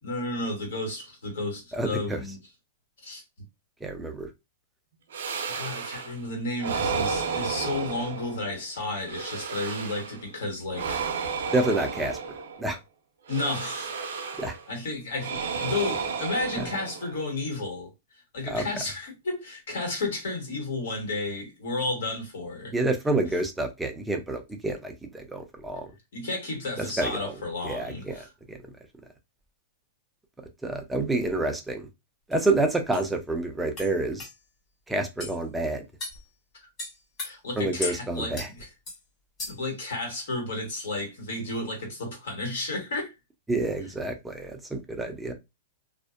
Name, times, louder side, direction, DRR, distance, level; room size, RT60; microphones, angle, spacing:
voice 1, 0.0-2.4 3.0-3.2 5.5-11.1 13.3-13.9 14.7-17.9 18.3-22.7 26.1-28.3 37.2-38.7 39.5-43.1, left 2 dB, 75° left, 1.4 m, -32 dB
voice 2, 1.7-2.2 3.8-4.3 11.5-12.2 12.6-12.8 14.4-14.6 16.6-16.7 18.5-18.6 22.7-25.9 26.8-27.3 27.6-28.6 30.6-31.9 32.3-34.3 34.9-35.8 37.6-38.5 43.5-45.3, right 2 dB, 5° right, 0.4 m, -28 dB
sound 1, 5.1-6.2 6.6-8.6 9.0-10.3 10.7-12.7 13.3-14.7 15.2-17.3, right 5 dB, 80° right, 0.5 m, -32 dB
sound 2, 32.3-32.4 32.9-33.1 33.8-33.9 34.2-34.3 35.2-35.4 36.0-36.2 36.8-37.3 37.8-38.0 38.3-38.5 38.9-39.0 39.4-39.7, left 3 dB, 30° left, 1.5 m, -35 dB
2.5 x 2.1 x 2.4 m
hypercardioid pair, 145°, 0 cm